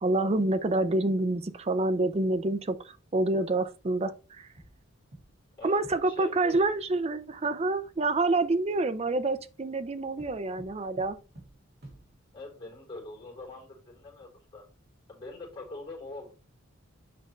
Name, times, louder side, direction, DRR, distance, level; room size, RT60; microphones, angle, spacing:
voice 1, 0.0-4.5 5.6-11.2, right 2 dB, 30° right, 0.5 m, -27 dB
sound 1, 4.6-5.5 5.8-6.9 10.2-12.4, right 1 dB, 50° right, 2.6 m, -52 dB
voice 2, 5.6-6.7 8.3-8.4 12.3-14.6 15.1-16.3, left 2 dB, 25° left, 3.8 m, -43 dB
6.7 x 5.1 x 3.2 m
head